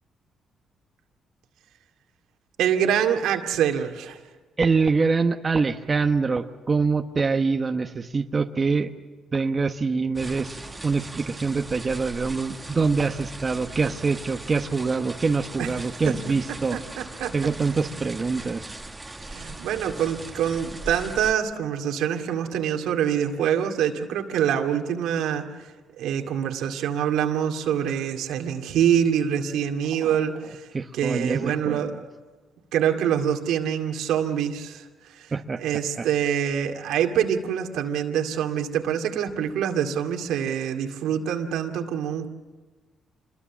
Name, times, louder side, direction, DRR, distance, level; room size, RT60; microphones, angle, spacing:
voice 1, 2.6-4.2 15.6-15.7 16.1-16.2 16.5-17.3 17.7-18.0 19.3-32.0 32.7-35.3 35.6-42.3, right 9 dB, 85° right, 4 dB, 2.2 m, -25 dB
voice 2, 4.6-8.9 9.3-10.6 10.8-16.8 17.3-18.6 30.7-31.8 35.3-35.6 36.0-36.1, right 4 dB, 30° right, 6 dB, 1.1 m, -24 dB
sound 1, 10.2-21.3, right 2 dB, 15° right, 1.7 m, -39 dB
26.5 x 21.5 x 7.3 m, 1.3 s
cardioid pair, 90°, 0 cm